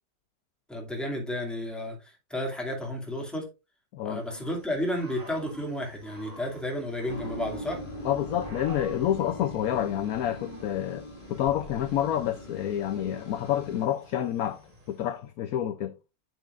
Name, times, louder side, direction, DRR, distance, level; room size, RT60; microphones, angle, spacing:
voice 1, 0.7-3.5 4.0-7.8, left 1 dB, ahead, 2.2 m, -32 dB
Growling / Cricket, 4.2-15.1, right 1 dB, 25° right, 1.6 m, -49 dB
sound 1, 7.1-13.9, left 1 dB, 30° left, 2.3 m, -42 dB
voice 2, 8.0-14.6 14.9-15.9, left 11 dB, 65° left, 0.9 m, -28 dB
8.9 x 7.6 x 2.5 m
omnidirectional pair, 1.9 m